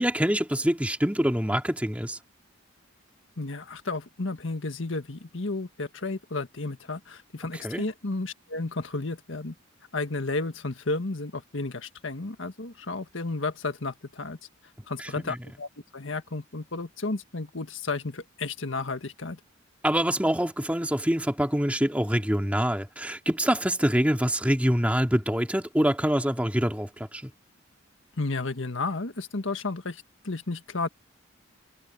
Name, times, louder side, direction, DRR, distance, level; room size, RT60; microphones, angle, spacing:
voice 1, 0.0-2.2 7.6-7.8 15.0-15.4 19.8-27.3, equal, 5° right, 2.3 m, -25 dB
voice 2, 3.4-9.5 9.9-14.4 14.9-19.4 28.2-30.9, left 3 dB, 80° left, 1.6 m, -32 dB
head